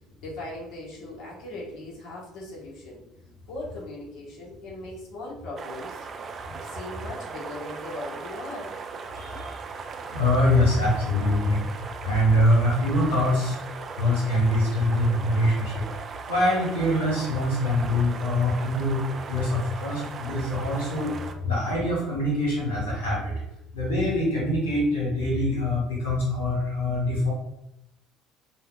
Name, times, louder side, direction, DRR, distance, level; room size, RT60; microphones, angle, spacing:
voice 1, 0.2-3.0 3.5-6.0 6.4-8.7, left 1 dB, 55° left, -4 dB, 1.3 m, -39 dB
sound 1, 5.6-21.3, right 5 dB, 40° right, 0.4 m, -38 dB
voice 2, 9.2-9.6 10.1-11.6 12.0-13.6 14.0-15.8 16.3-19.0 19.3-21.1 21.4-23.3 23.7-27.3, left 1 dB, 80° left, -6 dB, 1.2 m, -24 dB
5.6 x 2.3 x 2.4 m, 0.82 s
figure-of-eight pair, 60°, 0 cm